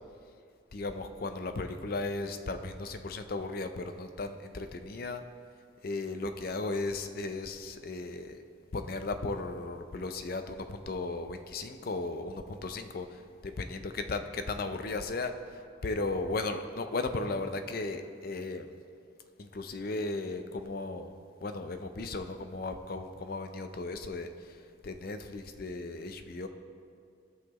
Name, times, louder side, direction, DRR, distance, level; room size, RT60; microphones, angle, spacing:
voice 1, 0.7-5.2 5.8-8.4 8.7-18.7 19.4-21.1 21.4-26.5, left 3 dB, 45° left, 8 dB, 0.5 m, -36 dB
16.5 x 5.7 x 3.0 m, 2.3 s
head